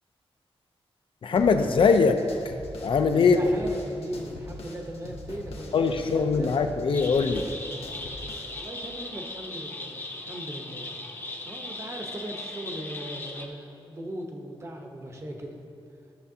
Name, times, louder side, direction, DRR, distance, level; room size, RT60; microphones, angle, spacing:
voice 1, 1.2-2.5 2.8-3.4 5.7-7.5, left 5 dB, 60° left, 7 dB, 0.4 m, -22 dB
sound 1, 1.4-8.7, left 1 dB, 90° left, 0.9 m, -42 dB
voice 2, 3.1-6.6 8.4-15.6, right 1 dB, 30° right, 2 dB, 0.8 m, -39 dB
sound 2, 6.9-13.5, left 2 dB, 20° left, 0.7 m, -38 dB
12.5 x 6.7 x 2.7 m, 2.6 s
wide cardioid pair, 150°, 10 cm